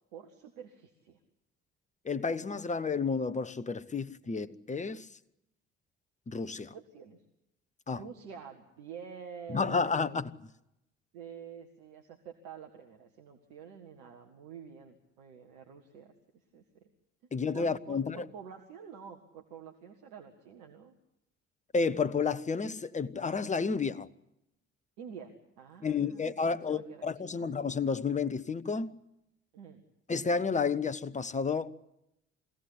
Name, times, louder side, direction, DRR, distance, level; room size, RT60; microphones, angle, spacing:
voice 1, 0.1-1.2 6.7-7.2 8.0-10.0 11.1-16.6 17.5-20.9 25.0-27.5 29.5-29.8, right 7 dB, 65° right, 1.8 m, -48 dB
voice 2, 2.0-5.1 6.3-6.7 7.9-8.0 9.5-10.3 17.3-18.2 21.7-24.1 25.8-29.0 30.1-31.7, left 5 dB, 20° left, 1.0 m, -31 dB
23.0 x 16.5 x 10.0 m
figure-of-eight pair, 45°, 35 cm